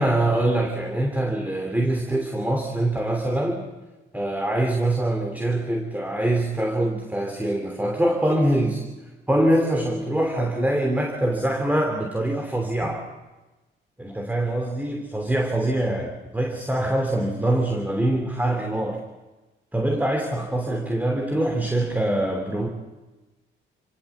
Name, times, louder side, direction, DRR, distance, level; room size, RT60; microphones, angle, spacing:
voice 1, 0.0-3.6 4.1-8.8 9.3-13.0 14.0-19.0 19.7-22.7, right 1 dB, 10° right, 2 dB, 3.0 m, -24 dB
27.5 x 17.5 x 7.3 m, 1.1 s
cardioid pair, 90°, 20 cm